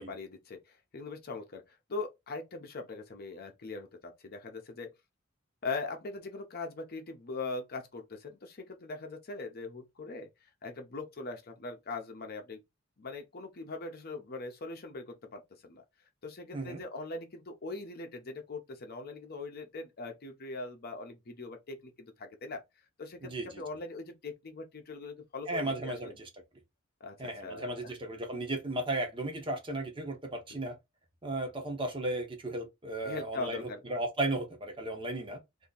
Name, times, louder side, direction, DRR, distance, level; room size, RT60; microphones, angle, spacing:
voice 1, 0.0-4.9 5.6-10.3 10.6-12.6 13.0-15.8 16.2-22.6 23.0-26.1 27.0-27.9 30.5-30.7 33.0-33.8, left 3 dB, 50° left, 0.7 m, -41 dB
voice 2, 23.2-23.6 25.5-26.2 27.2-30.8 31.2-35.4, right 2 dB, 25° right, 0.8 m, -35 dB
2.8 x 2.7 x 3.8 m
head